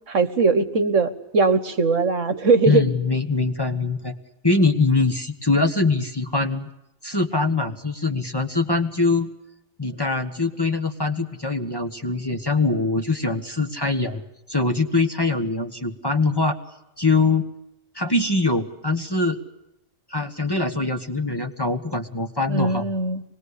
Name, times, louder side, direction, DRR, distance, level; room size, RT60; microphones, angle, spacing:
voice 1, 0.1-2.8 22.5-23.2, right 4 dB, 65° right, 11 dB, 1.7 m, -20 dB
voice 2, 2.7-4.1 4.4-6.7 7.0-9.3 9.8-14.2 14.5-16.6 17.0-17.4 17.9-19.4 20.1-22.9, left 3 dB, 20° left, 4 dB, 1.4 m, -23 dB
25.5 x 20.5 x 8.3 m, 0.87 s
omnidirectional pair, 1.4 m